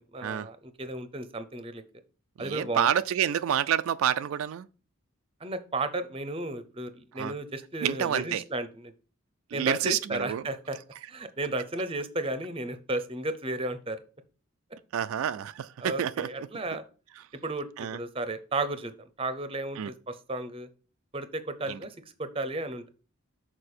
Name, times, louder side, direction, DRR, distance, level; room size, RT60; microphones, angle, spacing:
voice 1, 0.0-1.8 2.4-2.9 5.4-8.9 9.5-10.8 11.1-14.0 15.8-16.8 17.4-18.9 19.2-20.7 21.1-22.9, right 2 dB, 25° right, 0.6 m, -33 dB
voice 2, 2.4-4.7 7.2-7.3 7.8-8.4 9.5-10.5 14.9-16.3 17.2-17.3 17.8-18.0 19.8-19.9 21.7-21.8, right 9 dB, 80° right, 0.3 m, -28 dB
6.6 x 4.4 x 4.3 m
head